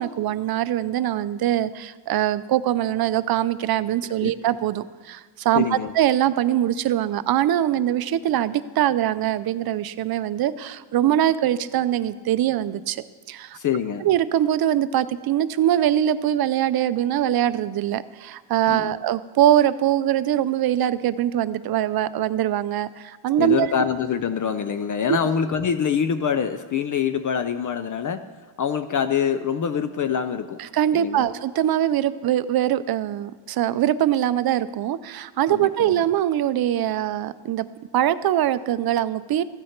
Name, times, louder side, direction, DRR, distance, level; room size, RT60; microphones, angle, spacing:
voice 1, 0.0-13.6 14.0-23.7 25.1-25.2 30.6-37.7 37.9-39.4, right 11 dB, 50° right, 14 dB, 0.5 m, -22 dB
voice 2, 5.5-5.9 13.5-14.1 18.7-19.0 23.4-28.3 28.6-30.6 30.9-31.3 35.5-36.0, left 7 dB, 40° left, 10 dB, 0.4 m, -25 dB
14.5 x 9.4 x 4.4 m, 1.4 s
cardioid pair, 150°, 50 cm